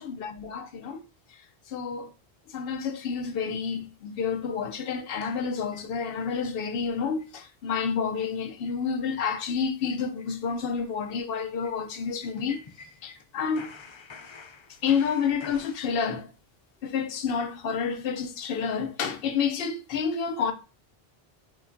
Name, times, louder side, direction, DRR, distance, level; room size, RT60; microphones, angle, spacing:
voice 1, 0.0-2.1 2.5-12.6 13.0-13.7 14.8-16.3 16.8-20.5, left 6 dB, 70° left, 0.8 m, -29 dB
sound 1, 5.2-6.3 6.7-6.8 7.2-7.4 7.7-7.8 8.1-8.3 8.6-8.8 9.1-9.3 9.6-13.2 13.5-15.8, left 4 dB, 50° left, 0.3 m, -49 dB
4.9 x 2.2 x 2.5 m
omnidirectional pair, 1.0 m